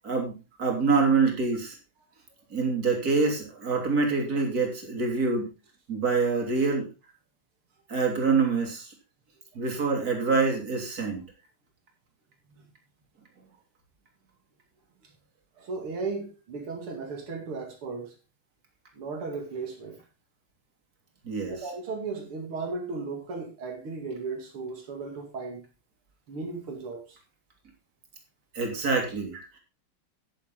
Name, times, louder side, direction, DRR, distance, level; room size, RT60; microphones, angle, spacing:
voice 1, 0.0-1.8 2.5-5.5 5.9-6.9 7.9-8.9 9.5-11.2 21.2-21.7 28.5-29.6, right 4 dB, 45° right, 3.3 m, -26 dB
voice 2, 15.6-18.1 18.9-20.0 21.5-25.6 26.3-27.0, right 4 dB, 85° right, 3.3 m, -35 dB
10.0 x 9.8 x 3.8 m
omnidirectional pair, 2.3 m